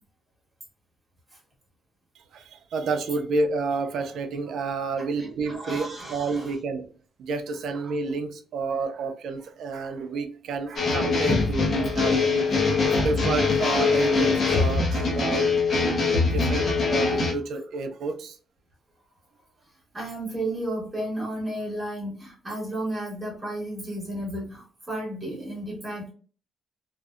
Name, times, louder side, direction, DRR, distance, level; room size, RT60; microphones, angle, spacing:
voice 1, 2.3-6.9 7.2-12.5 12.7-15.5 16.2-18.4, right 3 dB, 65° right, 6 dB, 0.4 m, -30 dB
voice 2, 5.0-6.5 19.6-26.1, right 1 dB, 10° right, -4 dB, 1.0 m, -33 dB
sound 1, 10.8-17.3, left 4 dB, 40° left, 0.5 m, -23 dB
2.6 x 2.0 x 2.3 m, 0.40 s
cardioid pair, 170°, 0 cm